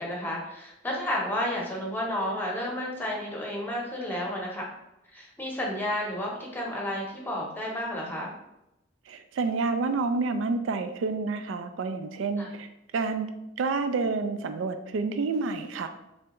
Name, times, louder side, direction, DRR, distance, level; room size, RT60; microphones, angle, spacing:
voice 1, 0.0-4.7 5.1-8.3 12.4-12.5, left 1 dB, 10° left, -2 dB, 0.8 m, -31 dB
voice 2, 9.1-13.3 13.6-15.9, right 4 dB, 85° right, 9 dB, 0.4 m, -29 dB
3.4 x 3.2 x 2.9 m, 0.89 s
head